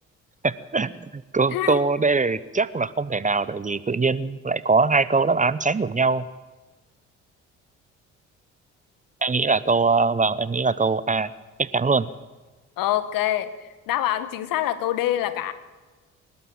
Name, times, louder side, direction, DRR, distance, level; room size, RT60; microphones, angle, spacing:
voice 1, 0.4-6.3 9.2-11.3 11.6-12.1, right 4 dB, 20° right, 16 dB, 0.9 m, -22 dB
voice 2, 1.5-1.8 12.8-13.5 13.9-15.5, left 13 dB, 65° left, 13 dB, 1.5 m, -25 dB
27.5 x 12.5 x 7.8 m, 1.3 s
hypercardioid pair, 50°, 36 cm